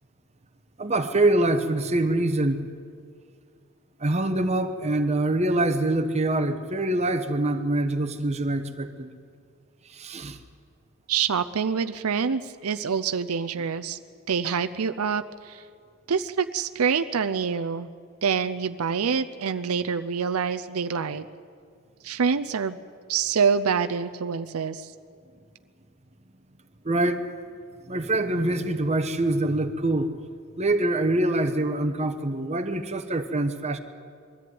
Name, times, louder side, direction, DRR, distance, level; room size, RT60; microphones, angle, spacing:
voice 1, 0.8-2.7 4.0-9.1 9.9-10.4 26.8-27.3 27.9-30.1 30.6-33.8, right 2 dB, 30° right, 7 dB, 1.1 m, -24 dB
voice 2, 11.1-14.0 14.3-15.6 16.1-17.9 18.2-21.2 22.0-22.8 23.1-24.9, right 6 dB, 80° right, 10 dB, 0.6 m, -26 dB
22.0 x 14.0 x 9.5 m, 2.2 s
head